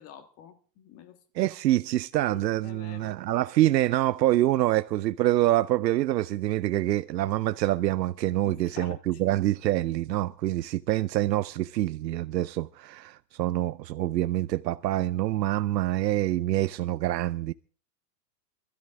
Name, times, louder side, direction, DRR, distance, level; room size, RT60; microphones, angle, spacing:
voice 1, 0.0-1.5 2.3-3.1 8.4-9.4, left 9 dB, 30° left, 1.6 m, -48 dB
voice 2, 1.4-17.5, right 15 dB, 90° right, 0.6 m, -26 dB
21.0 x 13.0 x 3.6 m
hypercardioid pair, 140°, 49 cm